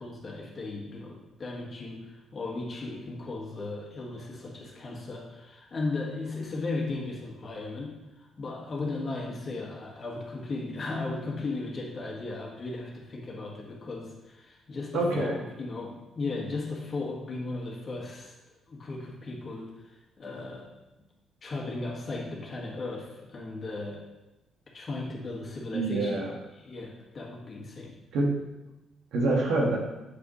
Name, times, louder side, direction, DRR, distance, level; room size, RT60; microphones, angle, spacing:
voice 1, 0.0-18.3 18.7-20.7 21.4-24.0 24.7-26.3 26.5-28.0, left 3 dB, 40° left, -2 dB, 1.8 m, -36 dB
voice 2, 14.9-15.4 25.7-26.3 28.1-28.4 29.1-29.8, right 2 dB, 80° right, -1 dB, 1.5 m, -26 dB
8.1 x 5.0 x 3.2 m, 1.0 s
cardioid pair, 90°, 0 cm